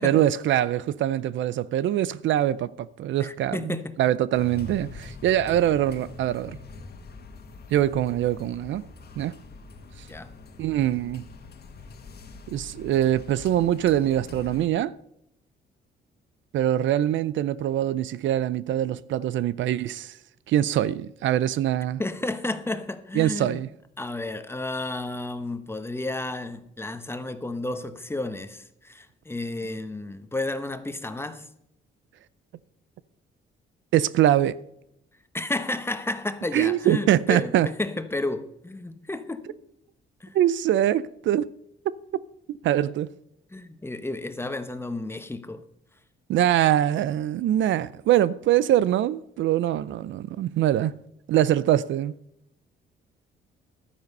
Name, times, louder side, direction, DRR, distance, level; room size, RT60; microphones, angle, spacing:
voice 1, 0.0-6.6 7.7-8.8 9.2-9.4 10.6-11.2 12.5-14.9 16.5-20.2 20.5-22.0 23.1-23.7 33.9-34.6 36.5-37.7 40.3-41.5 41.9-42.0 42.5-43.1 46.3-51.0 51.3-52.2, right 12 dB, 70° right, 0.5 m, -23 dB
voice 2, 3.2-4.0 10.1-10.3 22.0-23.6 24.0-31.4 35.3-39.6 40.2-40.4 43.5-45.6, left 2 dB, 10° left, 1.0 m, -32 dB
sound 1, 4.3-14.7, left 3 dB, 55° left, 1.7 m, -43 dB
12.0 x 9.4 x 5.4 m
cardioid pair, 90°, 20 cm